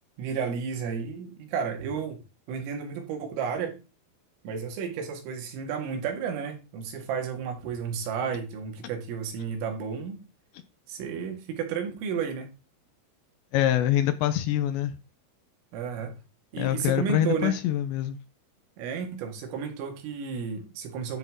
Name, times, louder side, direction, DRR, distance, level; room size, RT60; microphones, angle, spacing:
voice 1, 0.2-2.2 2.5-3.8 4.4-10.2 10.9-12.5 15.7-16.2 16.5-17.6 18.8-21.2, right 6 dB, 90° right, 4.6 m, -32 dB
voice 2, 13.5-14.9 16.6-18.2, left 12 dB, 80° left, 2.8 m, -25 dB
12.0 x 6.2 x 3.7 m
omnidirectional pair, 5.6 m